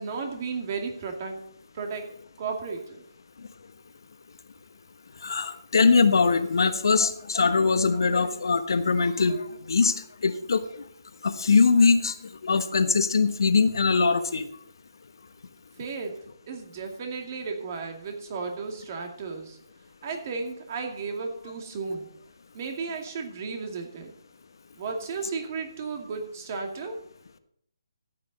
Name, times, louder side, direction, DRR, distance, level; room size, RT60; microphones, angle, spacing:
voice 1, 0.0-1.4 1.7-2.0 2.4-3.0 15.8-16.2 16.5-19.6 20.0-22.1 22.5-24.1 24.7-27.0, right 4 dB, 35° right, 3 dB, 2.3 m, -34 dB
voice 2, 5.2-10.8 11.2-12.1 12.4-14.5, left 4 dB, 65° left, 9 dB, 1.2 m, -22 dB
14.5 x 9.0 x 4.1 m, 0.67 s
figure-of-eight pair, 155°, 2 cm